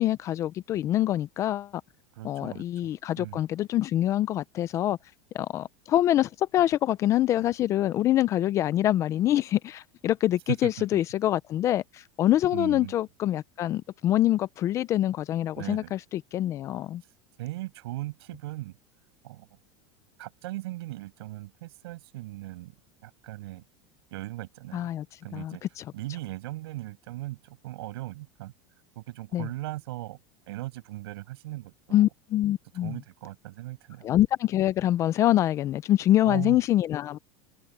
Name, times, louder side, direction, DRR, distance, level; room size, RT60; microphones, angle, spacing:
voice 1, 0.0-1.7 2.2-5.0 5.3-17.0 24.7-25.1 25.3-25.6 29.3-29.5 31.9-33.0 34.0-37.2, left 13 dB, 25° left, 0.3 m, -25 dB
voice 2, 2.1-2.9 3.2-3.4 10.5-11.0 12.5-13.0 15.6-15.9 17.4-18.8 19.2-19.5 20.2-22.8 23.0-23.6 24.1-24.9 25.2-25.6 25.9-28.5 29.0-30.2 30.5-32.0 32.7-34.1 36.2-36.6, right 17 dB, 80° right, 6.9 m, -38 dB
supercardioid pair, 175°, 13 cm